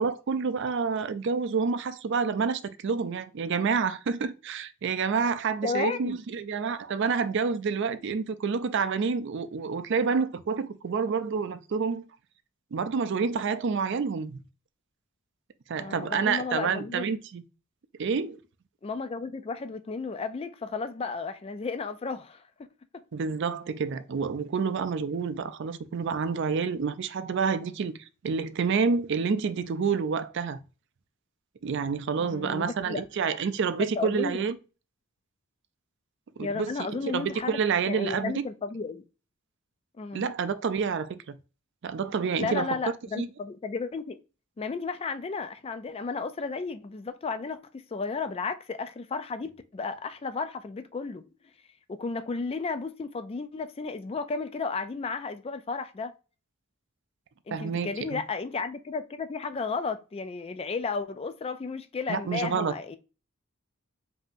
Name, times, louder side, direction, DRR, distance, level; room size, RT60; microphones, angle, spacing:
voice 1, 0.0-12.0 12.7-14.4 15.7-17.4 18.0-18.4 23.1-30.6 31.6-34.6 36.4-36.7 37.0-38.4 40.1-41.4 41.8-42.8 43.2-43.3 57.5-58.2 62.1-62.7, right 5 dB, 55° right, 0.4 m, -28 dB
voice 2, 5.6-6.2 15.8-17.0 18.8-22.4 32.2-33.0 34.0-34.4 36.4-37.6 37.9-39.0 40.0-40.2 42.4-44.2 44.6-51.3 51.9-56.1 57.5-63.0, left 4 dB, 25° left, 0.3 m, -33 dB
5.3 x 2.7 x 2.6 m
head